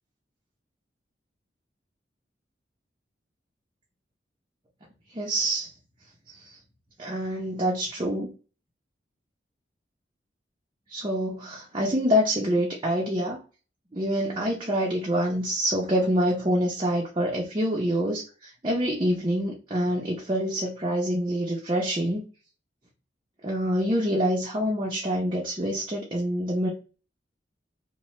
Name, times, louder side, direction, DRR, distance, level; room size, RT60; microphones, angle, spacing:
voice 1, 5.1-5.7 6.3-6.6 7.0-8.3 10.9-13.4 13.9-22.2 23.4-26.7, equal, 30° right, 0.6 m, -26 dB
2.8 x 2.2 x 3.1 m
head